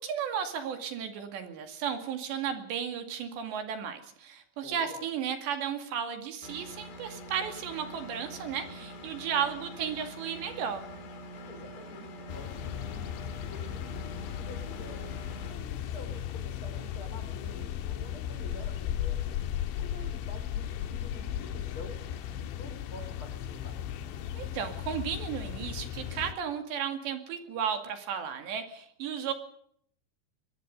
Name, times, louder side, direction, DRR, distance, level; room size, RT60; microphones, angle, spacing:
voice 1, 0.0-10.8 24.4-29.3, right 8 dB, 75° right, 6 dB, 4.4 m, -34 dB
voice 2, 4.6-5.1 11.5-13.1 13.4-15.1 15.4-19.3 19.8-22.0 22.4-23.8, left 1 dB, 30° left, 5 dB, 5.6 m, -48 dB
Engine, 6.4-15.5, equal, 70° left, 5.0 m, -45 dB
sound 1, 12.3-26.3, left 10 dB, 90° left, 3.7 m, -36 dB
23.0 x 22.0 x 5.4 m, 0.66 s
omnidirectional pair, 5.1 m